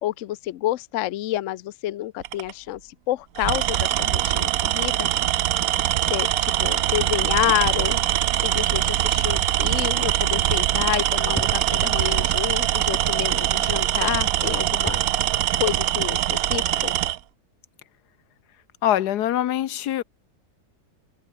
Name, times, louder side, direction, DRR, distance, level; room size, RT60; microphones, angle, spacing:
voice 1, 0.0-5.1 6.1-15.0 15.6-16.9, left 15 dB, 65° left, 0.8 m, -29 dB
Tools, 2.2-2.5 3.3-17.2, right 13 dB, 70° right, 1.1 m, -23 dB
sound 1, 9.4-10.7 11.3-13.7 14.5-15.8, left 1 dB, 5° left, 1.2 m, -40 dB
voice 2, 18.8-20.0, left 12 dB, 85° left, 1.4 m, -23 dB
omnidirectional pair, 1.7 m